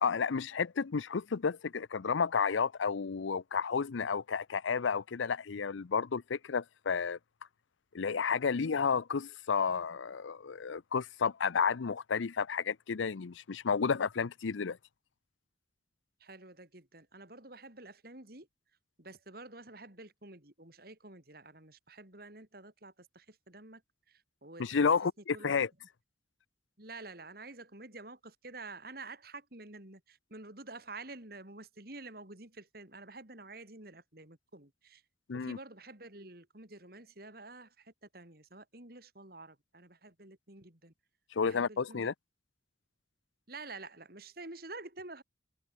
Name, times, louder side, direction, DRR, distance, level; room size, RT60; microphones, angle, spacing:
voice 1, 0.0-7.2 7.9-14.8 24.6-25.7 35.3-35.6 41.3-42.1, left 5 dB, 90° left, 0.6 m, -31 dB
voice 2, 16.2-18.5 19.0-23.8 24.1-24.9 25.3-25.6 26.8-35.0 35.3-40.9 41.4-42.1 43.5-45.2, right 3 dB, 50° right, 3.6 m, -49 dB
head